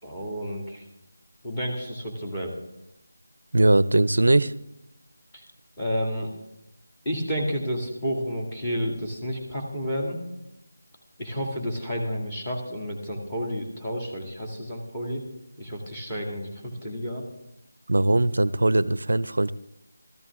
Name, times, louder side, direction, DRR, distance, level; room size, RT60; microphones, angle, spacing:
voice 1, 0.0-0.8 1.4-2.6 5.3-5.4 5.8-6.3 7.0-10.2 11.2-15.2 15.6-17.2, equal, 15° left, 1 dB, 2.4 m, -31 dB
voice 2, 3.5-4.5 17.9-19.5, right 2 dB, 65° right, 18 dB, 0.5 m, -20 dB
15.5 x 14.0 x 3.7 m, 0.86 s
figure-of-eight pair, 165°, 0 cm